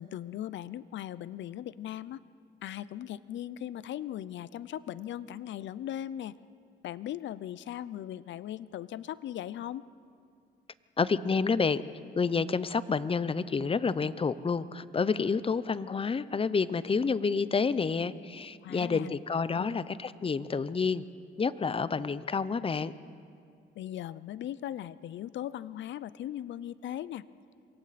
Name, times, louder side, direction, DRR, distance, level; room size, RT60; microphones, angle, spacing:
voice 1, 0.0-2.2 2.6-6.3 6.8-9.8 18.6-19.1 19.6-19.7 23.8-27.3, left 11 dB, 70° left, 17 dB, 0.6 m, -38 dB
voice 2, 11.0-11.8 12.2-21.0 21.4-22.9, left 5 dB, 30° left, 16 dB, 0.7 m, -29 dB
27.5 x 23.5 x 4.2 m, 2.3 s
cardioid pair, 90°, 20 cm